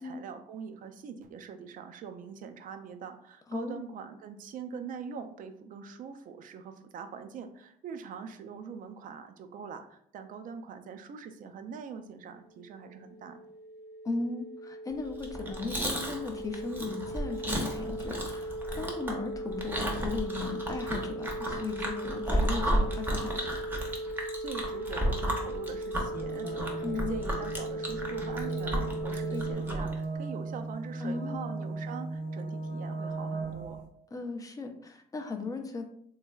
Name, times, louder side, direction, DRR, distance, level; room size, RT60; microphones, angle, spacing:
voice 1, 0.0-13.4 24.4-33.8, right 6 dB, 55° right, 8 dB, 0.4 m, -43 dB
voice 2, 3.5-3.8 14.0-23.4 26.8-27.2 29.3-29.6 31.0-31.5 34.1-35.9, left 4 dB, 20° left, 5 dB, 0.5 m, -37 dB
sound 1, 12.5-29.5, right 1 dB, 65° left, 0.6 m, -38 dB
Chewing mastication, 15.1-29.9, right 1 dB, 10° right, 0.7 m, -33 dB
sound 2, 26.1-33.8, right 3 dB, 80° right, 1.1 m, -37 dB
3.2 x 3.1 x 2.3 m, 0.68 s
cardioid pair, 110°, 17 cm